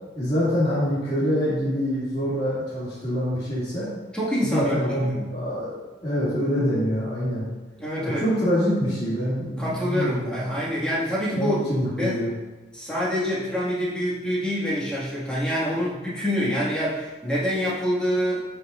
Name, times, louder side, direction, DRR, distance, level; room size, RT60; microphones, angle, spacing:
voice 1, 0.1-3.9 4.4-5.7 6.0-7.5 8.0-10.3 11.4-12.3, equal, 30° left, -11 dB, 2.7 m, -25 dB
voice 2, 4.1-5.3 7.8-8.3 9.6-11.6 12.0-12.2 12.7-18.4, equal, 5° left, -8 dB, 2.2 m, -26 dB
14.0 x 5.6 x 2.7 m, 1.2 s
head